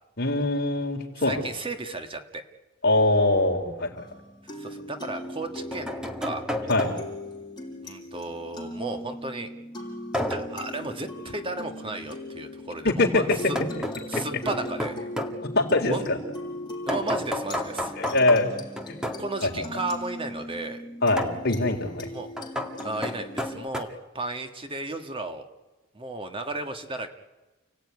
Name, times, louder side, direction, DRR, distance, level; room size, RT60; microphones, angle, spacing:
voice 1, 0.2-1.4 2.8-3.9 6.7-6.9 12.8-13.2 15.6-16.2 18.0-18.5 19.4-19.6 21.0-22.1, left 2 dB, 55° left, 2 dB, 3.9 m, -23 dB
voice 2, 1.2-2.4 4.6-6.4 7.8-9.5 10.3-13.6 14.1-15.0 15.9-16.0 16.9-17.9 19.2-20.8 22.1-22.3 22.8-23.9 24.1-25.4 25.9-27.1, right 2 dB, 25° right, 6 dB, 1.7 m, -34 dB
sound 1, 3.9-4.0 5.2-7.3 10.1-10.6 13.3-15.4 16.9-19.3 21.2-21.4 22.4-23.8, left 1 dB, 5° right, 2.1 m, -32 dB
sound 2, 4.0-23.7, left 1 dB, 25° left, 5.8 m, -39 dB
30.0 x 17.0 x 9.7 m, 1.1 s
head